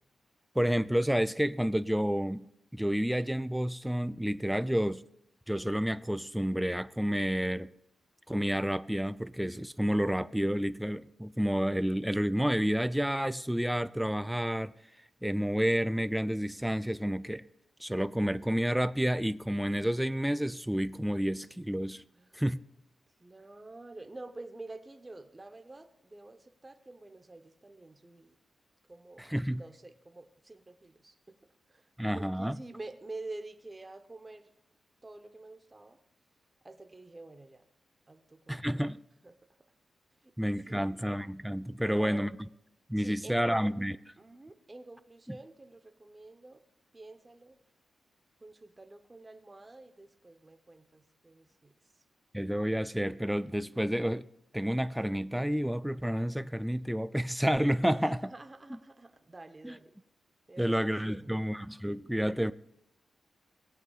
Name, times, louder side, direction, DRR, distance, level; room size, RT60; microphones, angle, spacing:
voice 1, 0.6-2.5 2.7-5.0 5.5-7.7 8.3-14.7 15.2-17.4 17.8-22.0 22.3-22.6 29.2-29.6 32.0-32.6 38.5-39.0 40.4-42.3 42.9-44.0 45.3-45.4 52.3-54.3 54.5-58.3 59.6-59.8 60.6-62.5, equal, 5° right, 0.3 m, -30 dB
voice 2, 23.2-28.4 28.9-29.2 29.6-31.3 31.7-34.5 35.0-36.0 36.6-37.6 38.1-38.8 39.2-39.4 40.2-40.3 40.7-41.0 41.8-42.3 43.0-43.8 44.2-46.6 46.9-47.6 48.4-51.7 57.9-59.9 60.5-61.5, right 2 dB, 20° right, 0.9 m, -48 dB
18.0 x 8.3 x 2.4 m
cardioid pair, 100°, 0 cm